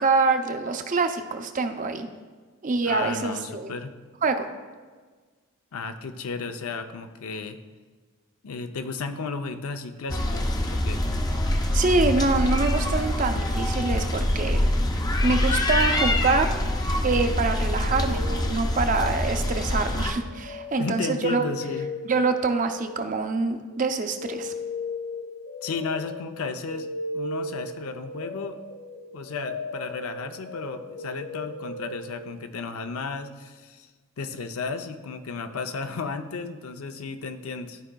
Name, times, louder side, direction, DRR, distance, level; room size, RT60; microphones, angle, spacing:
voice 1, 0.0-2.1 2.6-3.7 4.2-4.5 11.5-14.7 15.2-16.5 17.0-21.4 22.0-24.5, right 3 dB, 40° right, 6 dB, 0.5 m, -25 dB
voice 2, 2.8-3.9 5.7-7.6 8.4-11.0 20.8-21.9 25.6-28.6 29.1-33.9 34.2-37.8, left 4 dB, 85° left, 8 dB, 0.5 m, -34 dB
sound 1, 10.1-20.1, left 1 dB, 20° left, 0.4 m, -25 dB
sound 2, 17.5-23.5 23.7-32.3, left 2 dB, 70° left, 0.9 m, -37 dB
13.0 x 4.9 x 2.2 m, 1.4 s
head